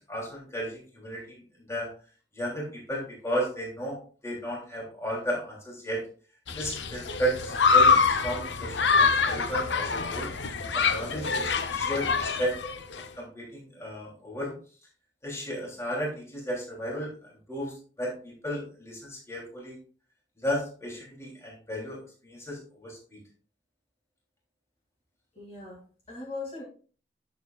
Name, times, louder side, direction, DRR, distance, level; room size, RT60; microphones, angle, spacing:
voice 1, 0.1-1.9 2.3-4.0 4.2-6.1 6.5-7.9 8.2-10.3 10.7-12.6 13.2-14.5 15.2-17.1 17.5-19.8 20.4-23.2, equal, 15° left, -4 dB, 3.1 m, -34 dB
Human group actions, 6.5-13.0, left 5 dB, 85° left, 0.8 m, -25 dB
voice 2, 25.3-26.6, left 3 dB, 35° left, -5 dB, 2.7 m, -39 dB
11.0 x 7.0 x 2.4 m, 0.40 s
head